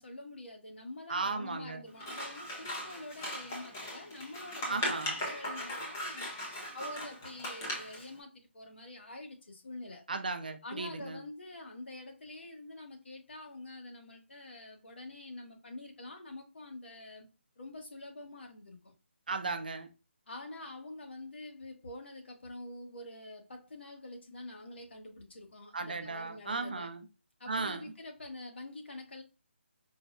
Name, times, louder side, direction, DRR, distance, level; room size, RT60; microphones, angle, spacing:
voice 1, 0.0-10.0 10.6-17.3 17.6-18.9 20.3-26.9 27.4-29.2, left 2 dB, 65° left, 1.1 m, -46 dB
voice 2, 1.1-1.8 4.7-5.2 10.1-11.2 19.3-19.9 25.7-27.0 27.5-27.9, right 3 dB, 45° right, 0.5 m, -36 dB
Scissors, 2.0-8.1, equal, 15° left, 0.4 m, -39 dB
4.6 x 2.1 x 2.3 m
hypercardioid pair, 180°, 7 cm